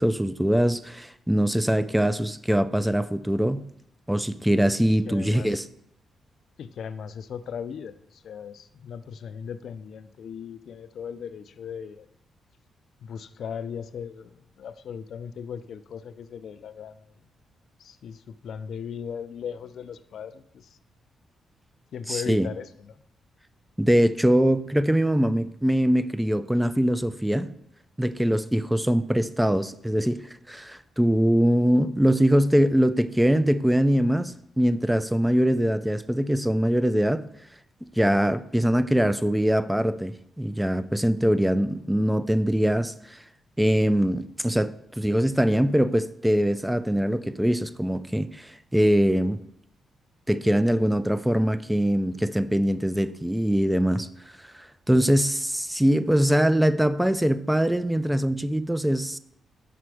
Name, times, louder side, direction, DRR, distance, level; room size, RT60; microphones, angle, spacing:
voice 1, 0.0-3.6 4.1-5.6 22.1-22.5 23.8-27.5 28.0-37.3 38.0-43.2 43.6-49.4 50.3-54.1 54.4-59.2, equal, 5° right, 0.3 m, -23 dB
voice 2, 5.0-5.6 6.6-12.1 13.0-17.2 17.8-20.8 21.9-23.0, left 7 dB, 70° left, 0.4 m, -38 dB
5.9 x 5.1 x 4.8 m
cardioid pair, 85°, 0 cm